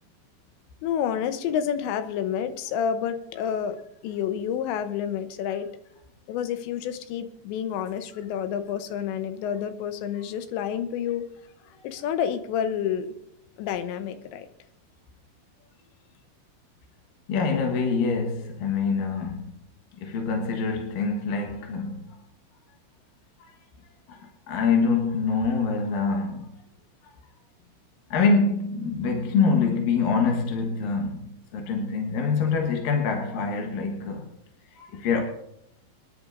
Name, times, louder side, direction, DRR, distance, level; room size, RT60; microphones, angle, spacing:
voice 1, 0.8-5.7 6.3-11.3 11.8-13.1 13.6-14.5, left 8 dB, 85° left, 3.1 m, -29 dB
voice 2, 17.3-19.5 20.0-22.1 23.4-23.5 24.1-24.2 24.5-26.5 28.1-34.3 34.7-35.2, left 4 dB, 65° left, 2.7 m, -25 dB
26.0 x 11.0 x 2.6 m
omnidirectional pair, 5.0 m